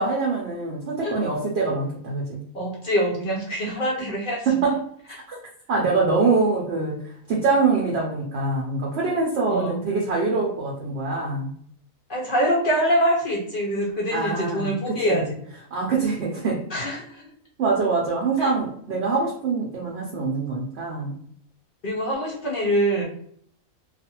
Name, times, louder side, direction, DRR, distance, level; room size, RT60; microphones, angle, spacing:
voice 1, 0.0-2.4 4.0-4.1 4.5-4.8 5.3-5.4 5.7-7.0 7.3-11.5 14.1-15.2 15.7-16.6 17.6-21.2, right 4 dB, 60° right, -3 dB, 0.8 m, -24 dB
voice 2, 2.5-4.5 9.5-9.8 12.1-15.3 16.7-17.2 18.4-18.5 21.8-23.0, equal, 55° left, -3 dB, 0.6 m, -24 dB
2.4 x 2.4 x 2.8 m, 0.63 s
omnidirectional pair, 1.5 m